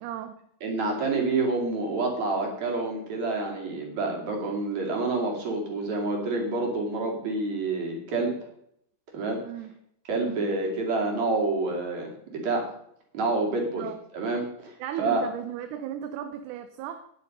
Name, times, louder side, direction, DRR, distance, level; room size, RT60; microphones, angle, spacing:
voice 1, 0.0-0.4 9.4-9.7 10.2-10.4 13.8-14.0 14.8-17.1, right 10 dB, 80° right, 9 dB, 2.2 m, -36 dB
voice 2, 0.6-8.3 9.1-9.4 10.1-12.7 13.1-13.8 14.1-15.2, right 3 dB, 65° right, 0 dB, 3.9 m, -28 dB
10.5 x 9.6 x 5.4 m, 0.72 s
omnidirectional pair, 3.6 m